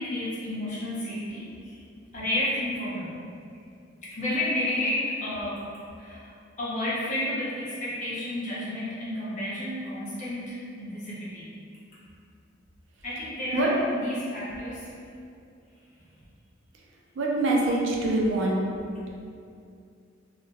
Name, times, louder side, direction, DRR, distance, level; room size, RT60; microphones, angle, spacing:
voice 1, 0.0-1.4 2.1-3.3 4.0-5.6 6.0-6.2 6.6-11.5 13.0-14.8, left 1 dB, 40° left, -9 dB, 0.8 m, -31 dB
voice 2, 17.2-18.6, right 2 dB, 65° right, -2 dB, 0.4 m, -24 dB
2.3 x 2.0 x 3.3 m, 2.4 s
head